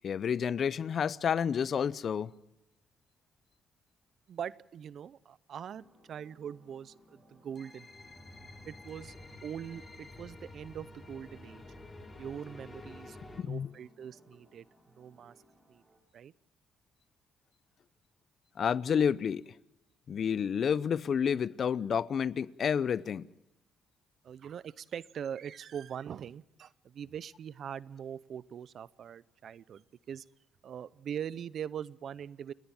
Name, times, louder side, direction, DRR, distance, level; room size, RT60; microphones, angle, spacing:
voice 1, 0.0-2.3 13.3-13.7 18.6-19.5 20.1-23.3, left 7 dB, 55° left, 0.6 m, -30 dB
voice 2, 4.3-7.9 8.6-11.6 12.2-14.7 15.0-15.3 15.7-15.8 16.1-16.3 24.2-30.2 30.6-32.5, right 8 dB, 60° right, 0.6 m, -42 dB
sound 1, 5.8-16.0, equal, 30° right, 4.2 m, -63 dB
sound 2, 7.6-13.4, left 2 dB, 20° left, 4.1 m, -50 dB
29.0 x 10.5 x 8.9 m
cardioid pair, 90°, 0 cm